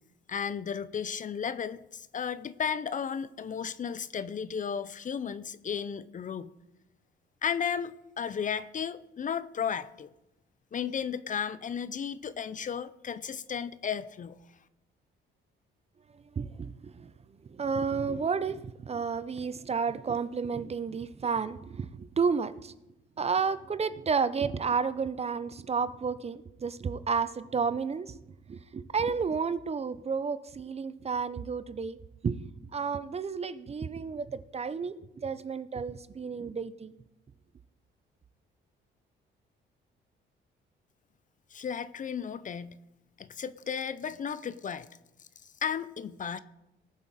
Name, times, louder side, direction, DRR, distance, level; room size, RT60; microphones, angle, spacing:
voice 1, 0.3-6.5 7.4-10.1 10.7-14.4 41.5-42.8 43.2-44.9 45.6-46.4, left 7 dB, 40° left, 16 dB, 0.6 m, -34 dB
voice 2, 16.4-17.1 17.5-22.7 23.2-28.1 28.5-32.0 32.2-36.9, right 5 dB, 30° right, 14 dB, 0.6 m, -31 dB
19.0 x 7.2 x 4.2 m, 0.93 s
cardioid pair, 90°, 20 cm